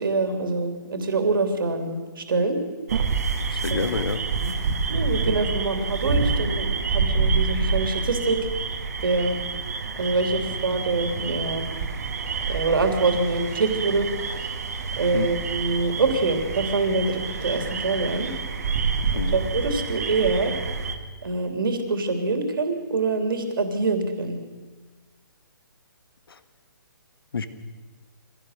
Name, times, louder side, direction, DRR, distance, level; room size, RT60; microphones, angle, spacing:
voice 1, 0.0-2.6 3.7-3.8 4.4-4.5 4.9-8.4 9.0-9.4 10.0-11.7 12.5-14.1 15.0-18.3 19.3-20.5 21.2-24.4, right 3 dB, 70° right, 6 dB, 3.1 m, -25 dB
sound 1, 2.9-21.0, right 4 dB, 45° right, 1.7 m, -28 dB
voice 2, 3.4-4.2 15.1-15.3 19.1-19.4 26.3-26.4 27.3-27.5, left 4 dB, 80° left, 11 dB, 1.7 m, -29 dB
23.5 x 17.0 x 6.6 m, 1.3 s
hypercardioid pair, 175°, 12 cm